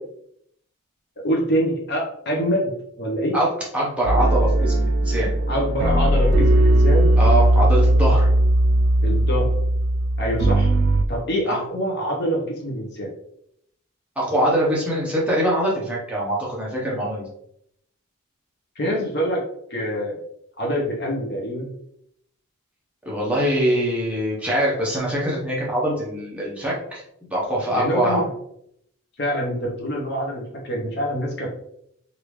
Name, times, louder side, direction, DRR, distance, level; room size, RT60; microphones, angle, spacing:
voice 1, 1.2-3.4 5.5-7.1 9.0-9.6 10.2-10.7 11.1-13.1 18.8-19.4 19.7-20.2 20.6-21.7 27.7-28.3 29.2-31.5, equal, 50° left, -1 dB, 0.7 m, -25 dB
voice 2, 3.7-5.3 7.2-8.3 11.5-11.6 14.2-17.3 23.1-27.0 27.3-28.2, right 1 dB, 5° right, -5 dB, 0.8 m, -23 dB
sound 1, 4.0-11.0, right 1 dB, 55° right, 0.3 m, -18 dB
3.4 x 2.5 x 3.0 m, 0.72 s
head